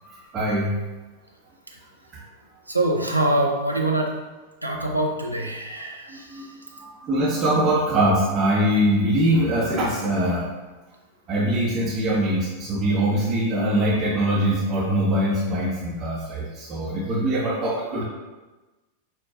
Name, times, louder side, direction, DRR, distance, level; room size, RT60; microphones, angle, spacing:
voice 1, 0.3-0.7 6.1-10.4 11.3-18.0, right 1 dB, 30° right, -4 dB, 0.8 m, -23 dB
voice 2, 2.7-4.1 4.6-6.6 17.1-17.3, right 1 dB, 85° right, 0 dB, 0.6 m, -25 dB
5.9 x 2.3 x 3.6 m, 1.2 s
figure-of-eight pair, 90°, 0 cm